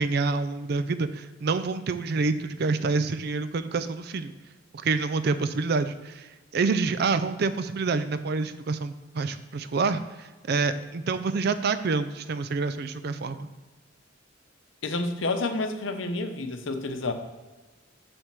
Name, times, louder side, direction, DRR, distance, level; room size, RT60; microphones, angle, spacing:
voice 1, 0.0-4.3 4.7-13.5, right 4 dB, 55° right, 12 dB, 0.4 m, -27 dB
voice 2, 14.8-17.1, left 2 dB, 80° left, 7 dB, 0.7 m, -29 dB
7.3 x 3.4 x 6.0 m, 1.2 s
head